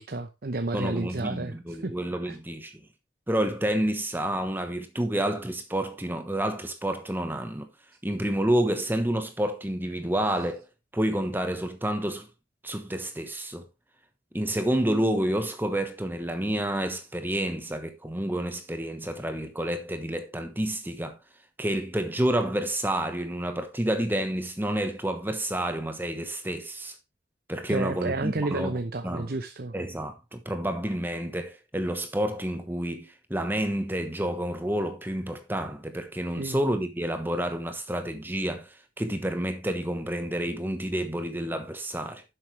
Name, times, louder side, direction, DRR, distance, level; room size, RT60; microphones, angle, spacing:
voice 1, 0.0-1.9 2.2-2.4 27.7-29.8 36.3-36.6, right 2 dB, 55° right, 0.8 m, -31 dB
voice 2, 0.7-2.8 3.3-7.7 8.0-10.7 10.9-12.3 12.6-13.6 14.3-21.2 21.6-26.9 27.5-28.7 29.0-29.3 29.7-42.2, right 1 dB, 10° right, 1.1 m, -29 dB
11.5 x 7.7 x 3.2 m
head